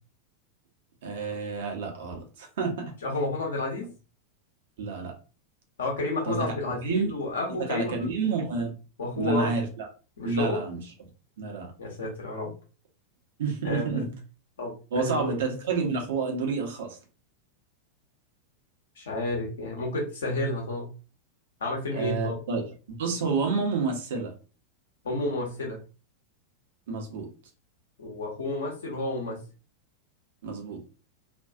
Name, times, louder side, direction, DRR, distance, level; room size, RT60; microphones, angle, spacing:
voice 1, 1.0-2.9 4.8-5.1 6.2-6.5 6.8-7.1 7.7-8.7 9.1-9.9 10.2-10.8 11.4-11.7 13.4-14.1 14.9-17.0 21.9-24.3 26.9-27.3 30.4-30.8, right 4 dB, 55° right, 2 dB, 0.7 m, -29 dB
voice 2, 3.0-3.9 5.8-8.1 9.0-9.5 10.2-10.6 11.8-12.5 13.6-14.0 14.6-15.3 19.0-20.9 21.6-22.4 25.0-25.8 28.0-29.4, left 2 dB, 65° left, 0 dB, 0.9 m, -30 dB
2.5 x 2.3 x 2.3 m, 0.34 s
figure-of-eight pair, 90°, 0 cm